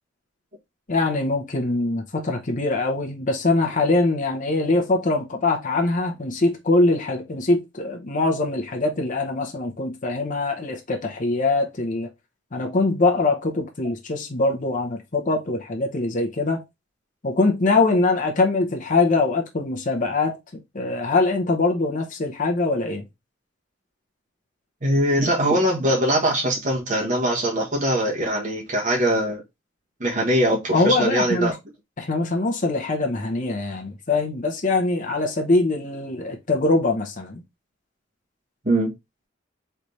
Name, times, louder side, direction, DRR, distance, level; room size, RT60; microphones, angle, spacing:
voice 1, 0.9-12.1 12.5-16.6 17.2-20.4 20.7-23.0 30.7-31.5 32.0-37.4, left 2 dB, 40° left, 0.8 m, -23 dB
voice 2, 24.8-29.4 30.0-31.6 38.6-38.9, right 1 dB, 40° right, 1.3 m, -22 dB
3.4 x 3.1 x 4.0 m
head